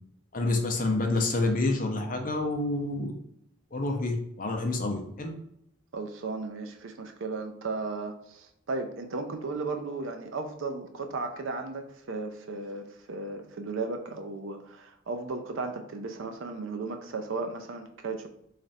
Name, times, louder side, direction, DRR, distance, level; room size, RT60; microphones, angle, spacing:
voice 1, 0.3-3.1 3.7-5.3, left 2 dB, 40° left, 3 dB, 0.5 m, -28 dB
voice 2, 5.9-18.3, right 3 dB, 65° right, 6 dB, 0.5 m, -35 dB
3.2 x 2.5 x 4.0 m, 0.74 s
head